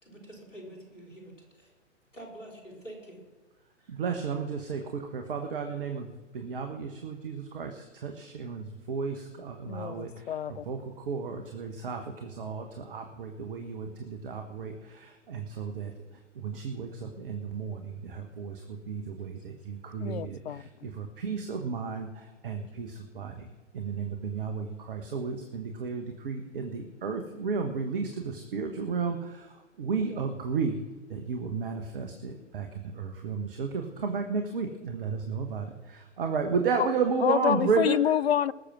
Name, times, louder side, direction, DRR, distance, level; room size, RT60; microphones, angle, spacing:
voice 1, 0.0-1.7 2.1-3.2 3.8-4.0 19.4-19.5, right 1 dB, 80° left, 4.3 m, -47 dB
voice 2, 3.9-6.1 6.3-10.3 10.7-15.9 16.4-23.5 23.7-30.8 31.1-38.0, right 5 dB, 45° right, 1.3 m, -33 dB
voice 3, 9.7-10.6 20.0-20.6 36.8-36.9 37.2-38.5, left 10 dB, 60° left, 0.5 m, -27 dB
20.0 x 6.8 x 6.0 m
figure-of-eight pair, 120°, 37 cm